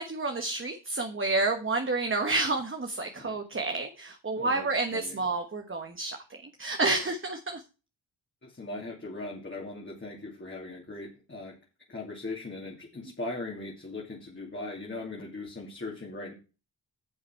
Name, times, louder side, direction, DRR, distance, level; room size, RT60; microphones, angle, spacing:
voice 1, 0.0-7.6, right 3 dB, 30° right, 4 dB, 1.4 m, -30 dB
voice 2, 4.3-5.2 8.4-11.6 11.9-16.3, left 2 dB, 30° left, -3 dB, 2.7 m, -39 dB
10.0 x 7.2 x 4.5 m, 0.32 s
cardioid pair, 75°, 41 cm